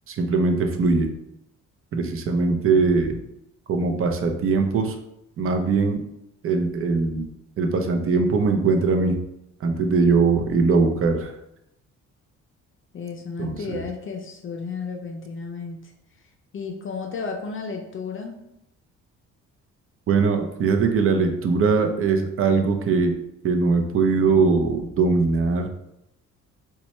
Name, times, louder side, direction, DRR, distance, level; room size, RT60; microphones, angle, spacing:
voice 1, 0.1-1.1 1.9-3.2 3.7-5.0 5.4-6.0 6.4-7.3 7.6-9.2 9.6-11.3 13.4-13.8 20.1-23.2 23.4-25.7, right 4 dB, 45° right, 4 dB, 0.6 m, -21 dB
voice 2, 12.9-15.9 16.5-18.4, left 5 dB, 45° left, 2 dB, 0.5 m, -33 dB
4.0 x 2.3 x 3.1 m, 0.82 s
cardioid pair, 90°, 30 cm